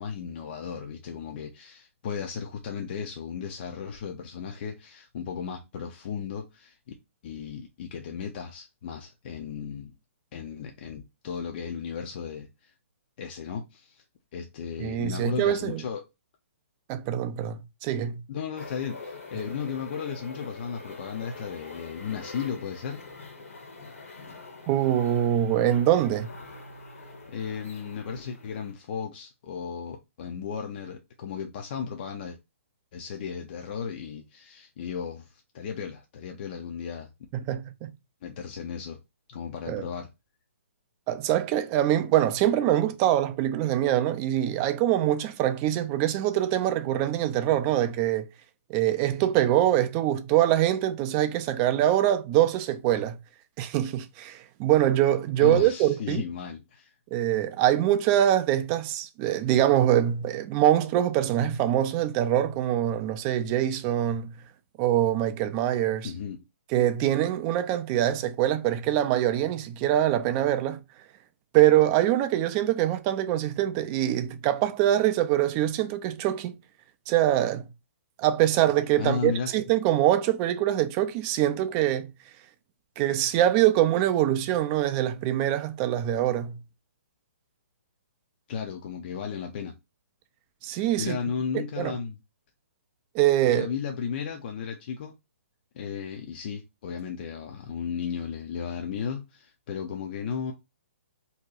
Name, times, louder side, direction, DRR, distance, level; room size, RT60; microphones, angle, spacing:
voice 1, 0.0-6.8 7.2-9.9 10.3-12.7 13.2-14.0 14.3-16.0 17.9-23.0 27.3-32.4 32.9-37.1 38.2-39.0 39.3-40.1 55.4-56.9 66.0-66.4 79.0-79.5 88.5-89.7 91.0-92.2 93.5-95.1 95.7-100.5, left 6 dB, 45° left, 0.4 m, -35 dB
voice 2, 14.8-15.8 16.9-18.2 24.7-26.4 37.4-37.9 39.7-39.9 41.1-48.3 48.7-53.2 53.6-56.2 57.1-64.4 64.8-66.1 66.7-70.8 71.5-76.6 77.1-77.7 78.2-82.1 83.0-86.6 90.6-91.2 91.5-91.9 93.1-93.7, right 12 dB, 25° right, 0.3 m, -24 dB
sound 1, 18.6-28.7, left 3 dB, 75° left, 1.0 m, -44 dB
2.8 x 2.2 x 3.7 m
hypercardioid pair, 135°, 8 cm